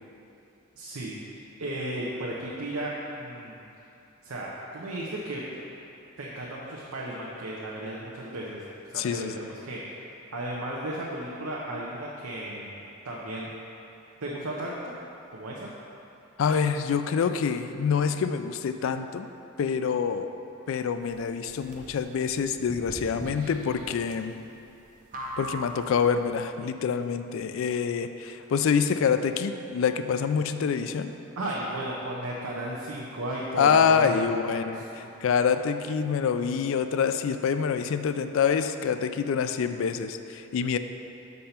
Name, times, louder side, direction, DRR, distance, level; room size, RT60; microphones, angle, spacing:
voice 1, 0.8-1.2 1.6-3.6 4.2-5.4 6.2-8.6 8.9-10.0 10.3-13.5 14.2-14.9 15.3-15.7 31.3-35.1, right 1 dB, 80° right, -4 dB, 0.7 m, -34 dB
voice 2, 8.9-9.3 16.4-19.3 19.6-20.3 20.7-24.3 25.4-31.1 33.6-40.8, left 6 dB, 60° left, 10 dB, 0.3 m, -26 dB
sound 1, 21.0-26.3, right 1 dB, 35° right, 0.6 m, -41 dB
6.6 x 5.4 x 4.3 m, 2.8 s
head